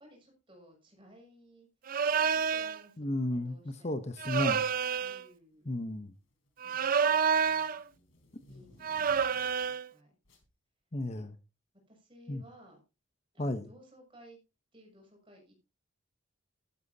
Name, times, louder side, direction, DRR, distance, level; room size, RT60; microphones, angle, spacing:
voice 1, 0.0-1.7 2.0-4.1 5.0-5.7 6.6-7.7 8.5-10.2 11.9-12.8 13.3-14.4 14.7-15.6, equal, 25° right, 1 dB, 6.2 m, -58 dB
sound 1, 1.9-2.8 4.2-5.2 6.6-7.8 8.8-9.9, right 6 dB, 45° right, 0.5 m, -29 dB
voice 2, 3.0-4.6 5.7-6.1 10.9-11.4 12.3-12.4 13.4-13.7, left 1 dB, 35° left, 9 dB, 0.9 m, -33 dB
sound 2, 3.3-3.6 4.6-5.0 5.4-9.7 10.2-10.5, left 1 dB, 90° left, 3.8 m, -60 dB
12.5 x 12.0 x 2.8 m, 0.28 s
head